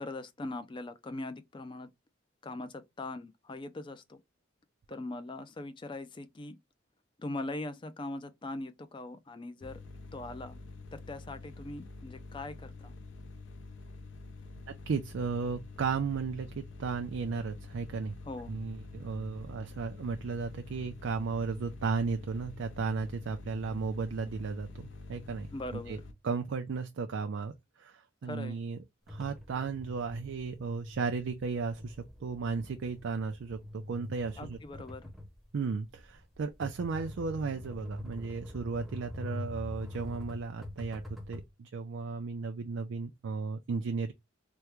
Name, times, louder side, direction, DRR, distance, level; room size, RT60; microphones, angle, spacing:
voice 1, 0.0-1.9 2.4-4.2 4.9-6.6 7.2-9.8 10.1-10.6 10.9-12.9 18.2-18.5 25.5-26.0 28.2-28.6 34.4-35.1, left 2 dB, 25° left, 0.4 m, -41 dB
sound 1, 9.6-26.1, left 3 dB, 70° left, 0.7 m, -47 dB
voice 2, 14.7-18.1 18.5-25.5 25.7-26.0 26.2-28.8 29.1-34.6 35.5-44.1, right 4 dB, 75° right, 0.4 m, -35 dB
sound 2, 29.1-41.5, left 1 dB, ahead, 0.8 m, -44 dB
3.5 x 2.1 x 3.0 m
head